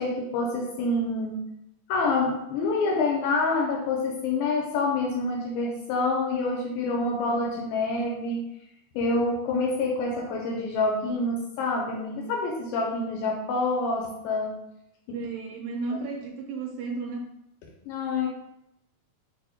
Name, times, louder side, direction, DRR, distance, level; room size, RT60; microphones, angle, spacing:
voice 1, 0.0-1.5 1.9-8.4 9.0-14.6 15.1-15.2 17.9-18.3, left 3 dB, 80° left, 0 dB, 2.1 m, -27 dB
voice 2, 15.1-17.2, right 4 dB, 80° right, 0 dB, 2.1 m, -33 dB
6.1 x 2.2 x 2.7 m, 0.82 s
omnidirectional pair, 4.3 m